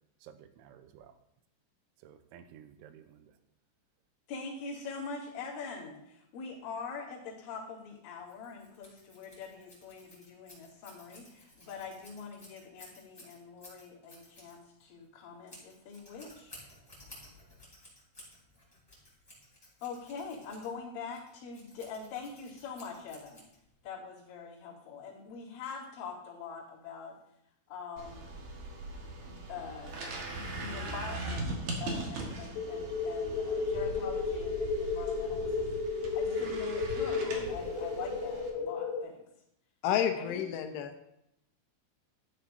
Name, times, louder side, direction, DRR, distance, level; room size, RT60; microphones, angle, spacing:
voice 1, 0.2-1.1 2.0-3.3, right 9 dB, 90° right, 9 dB, 3.1 m, -54 dB
voice 2, 4.3-16.6 19.8-23.4 23.8-27.2 27.7-28.3 28.9-29.0 29.2-30.1 30.3-31.5 31.8-39.2 40.1-40.7, left 5 dB, 50° left, -10 dB, 4.2 m, -44 dB
Scissors, 8.2-23.9, left 1 dB, 5° left, 3.9 m, -56 dB
sound 1, 28.0-38.5, right 2 dB, 65° right, 1.8 m, -40 dB
sound 2, 32.6-39.0, left 4 dB, 70° left, 3.5 m, -33 dB
voice 3, 39.8-41.1, left 9 dB, 85° left, 6 dB, 3.1 m, -30 dB
14.0 x 9.2 x 2.7 m, 0.78 s
omnidirectional pair, 5.5 m